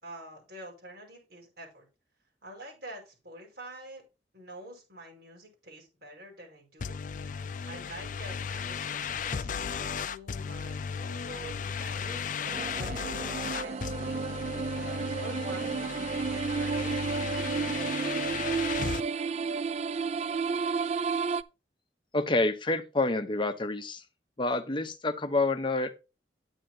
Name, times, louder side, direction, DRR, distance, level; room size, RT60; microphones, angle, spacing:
voice 1, 0.0-1.9 2.4-4.0 4.3-7.0 7.6-9.5 9.9-12.3 12.8-13.2 13.5-14.2 14.5-18.5, right 1 dB, 60° right, 5.3 m, -46 dB
sound 1, 6.8-19.0, left 6 dB, 45° left, 0.4 m, -35 dB
sound 2, 12.4-21.4, right 5 dB, 40° right, 0.3 m, -32 dB
voice 2, 22.1-24.0 24.4-26.0, left 2 dB, 30° left, 0.8 m, -28 dB
9.9 x 8.9 x 2.8 m
head